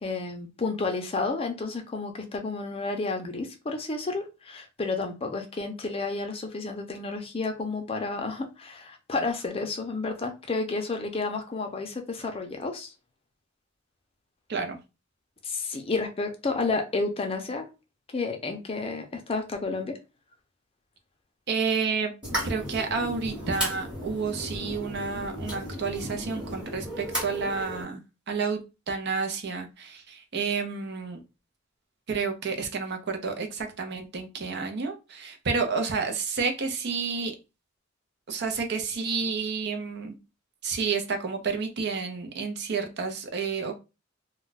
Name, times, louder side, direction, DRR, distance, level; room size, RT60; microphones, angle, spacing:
voice 1, 0.0-12.9 15.4-17.7 18.1-20.0, left 3 dB, 30° left, 4 dB, 0.5 m, -31 dB
voice 2, 21.5-22.1 22.4-28.0 28.3-28.6 28.9-31.2 32.1-37.3 38.3-40.1 40.6-43.7, right 5 dB, 60° right, 5 dB, 0.6 m, -30 dB
sound 1, 22.2-27.8, equal, 5° right, 1.0 m, -35 dB
2.2 x 2.2 x 3.9 m, 0.28 s
head